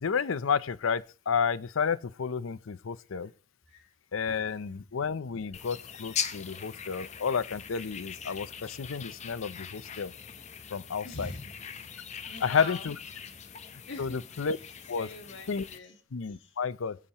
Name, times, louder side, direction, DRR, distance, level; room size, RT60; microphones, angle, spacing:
voice 1, 0.0-3.3 4.1-10.1 10.7-11.3 12.4-13.0 14.0-14.6 14.9-15.1 15.5-15.7 16.1-17.0, left 6 dB, 85° left, 0.6 m, -31 dB
sound 1, 5.5-15.8, left 8 dB, 35° left, 0.7 m, -41 dB
voice 2, 11.0-11.5 12.3-12.8 13.9-14.2 14.6-16.0 16.4-16.5, left 2 dB, 60° left, 2.0 m, -43 dB
21.5 x 8.6 x 2.9 m
head